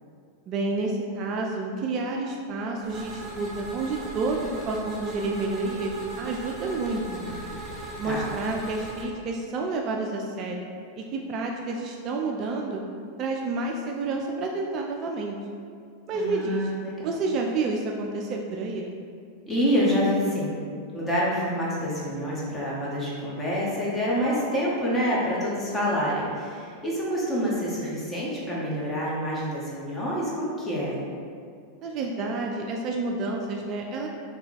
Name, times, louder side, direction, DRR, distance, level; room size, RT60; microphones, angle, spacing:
voice 1, 0.5-7.4 8.0-10.6 11.0-12.8 13.2-15.4 16.1-16.7 17.0-18.9 31.8-34.1, right 3 dB, 40° right, 0 dB, 0.3 m, -29 dB
sound 1, 2.8-9.0, right 1 dB, 10° right, 1.1 m, -38 dB
voice 2, 16.1-17.1 19.5-20.6 20.9-31.0, equal, 15° left, -6 dB, 1.0 m, -27 dB
2.9 x 2.2 x 4.0 m, 2.2 s
hypercardioid pair, 95°, 0 cm